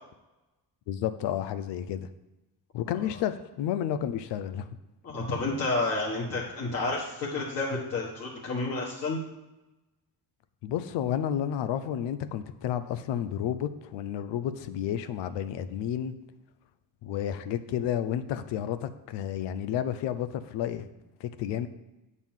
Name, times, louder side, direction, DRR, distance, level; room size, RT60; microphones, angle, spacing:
voice 1, 0.9-2.1 2.7-4.7 10.6-16.2 17.0-20.9 21.2-21.7, left 10 dB, 90° left, 12 dB, 0.7 m, -31 dB
voice 2, 5.0-9.2, left 3 dB, 40° left, -6 dB, 1.5 m, -30 dB
8.9 x 4.2 x 7.3 m, 1.0 s
cardioid pair, 155°, 41 cm